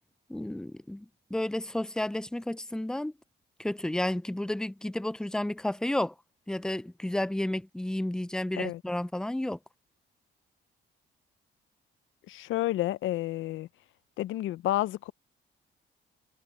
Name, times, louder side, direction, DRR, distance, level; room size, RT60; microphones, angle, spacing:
voice 1, 0.3-1.1 1.3-3.1 3.6-6.1 6.5-9.6, left 1 dB, 5° left, 0.4 m, -31 dB
voice 2, 12.3-13.7 14.2-15.1, left 15 dB, 80° left, 0.6 m, -30 dB
cardioid pair, 90°, 20 cm